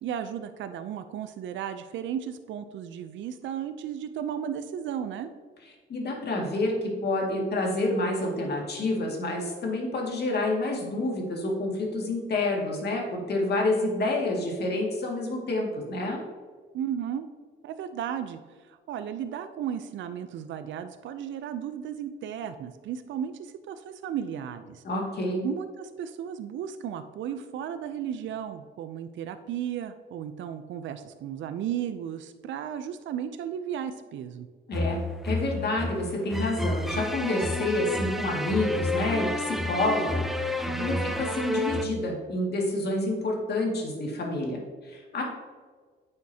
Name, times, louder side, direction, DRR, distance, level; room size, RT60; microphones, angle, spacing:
voice 1, 0.0-5.3 16.7-17.3 17.6-18.4 18.7-24.8 25.4-34.5 40.7-41.1, right 9 dB, 70° right, 10 dB, 0.5 m, -34 dB
voice 2, 5.9-16.2 24.8-25.5 34.7-45.2, left 2 dB, 55° left, 0 dB, 2.1 m, -28 dB
sound 1, 34.7-41.8, left 1 dB, ahead, 0.6 m, -30 dB
9.2 x 6.5 x 2.8 m, 1.5 s
cardioid pair, 90°, 20 cm